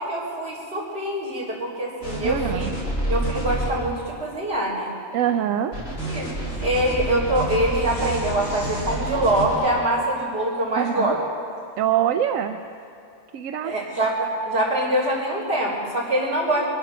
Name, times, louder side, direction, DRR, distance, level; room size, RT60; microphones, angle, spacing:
voice 1, 0.0-2.7 3.1-4.9 6.1-6.3 6.6-11.2 13.6-16.7, right 1 dB, 50° right, -7 dB, 3.9 m, -24 dB
sound 1, 2.0-3.7 5.7-9.7, right 1 dB, 85° left, 4.9 m, -28 dB
voice 2, 2.2-2.7 5.1-5.7 10.8-11.2 11.8-12.6 13.3-13.7, right 10 dB, 85° right, 7 dB, 1.0 m, -24 dB
sound 2, 6.4-6.7 7.7-9.0 10.9-11.0 11.6-11.7 13.9-14.1, equal, 10° right, 3.8 m, -41 dB
23.0 x 10.0 x 6.1 m, 2.5 s
omnidirectional pair, 1.3 m